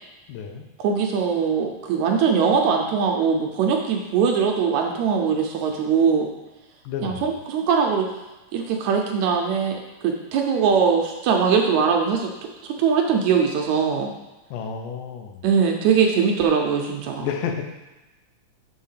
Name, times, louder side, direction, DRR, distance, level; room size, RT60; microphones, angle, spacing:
voice 1, 0.3-0.7 6.8-7.2 14.5-15.5 17.2-17.6, left 7 dB, 85° left, 3 dB, 2.3 m, -30 dB
voice 2, 0.8-6.3 7.0-8.1 8.5-12.3 12.6-14.1 15.4-17.3, right 6 dB, 75° right, 2 dB, 1.8 m, -21 dB
6.3 x 3.6 x 5.6 m, 1.1 s
omnidirectional pair, 3.6 m